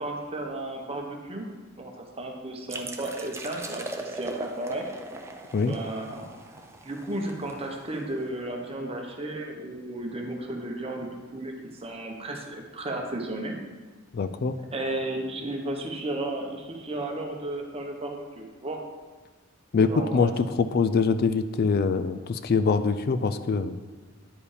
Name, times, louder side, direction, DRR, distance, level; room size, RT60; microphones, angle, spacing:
voice 1, 0.0-1.5 1.8-4.9 5.7-6.6 6.8-11.5 11.8-13.6 14.7-18.8 19.9-20.3, right 1 dB, 30° right, 2 dB, 1.0 m, -34 dB
sound 1, 2.7-8.2, right 2 dB, 15° right, 0.6 m, -40 dB
voice 2, 14.1-14.5 19.7-23.8, left 5 dB, 50° left, 11 dB, 0.4 m, -24 dB
9.9 x 4.9 x 5.0 m, 1.4 s
head